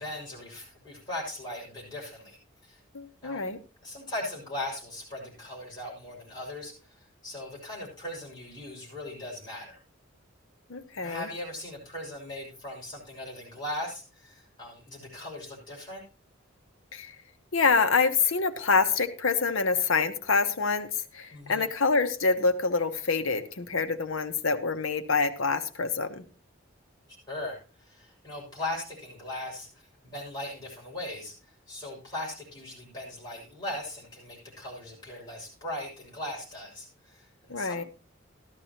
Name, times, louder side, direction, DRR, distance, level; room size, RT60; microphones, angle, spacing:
voice 1, 0.0-2.4 2.6-2.8 3.2-3.4 3.8-9.8 11.0-16.0 21.3-21.6 27.3-29.7 30.0-31.3 31.7-37.9, left 1 dB, 20° left, -5 dB, 5.9 m, -39 dB
voice 2, 2.9-3.6 10.7-11.3 16.9-17.1 17.5-26.2 37.5-37.8, left 4 dB, 80° left, 8 dB, 1.0 m, -26 dB
14.0 x 11.5 x 2.9 m, 0.34 s
head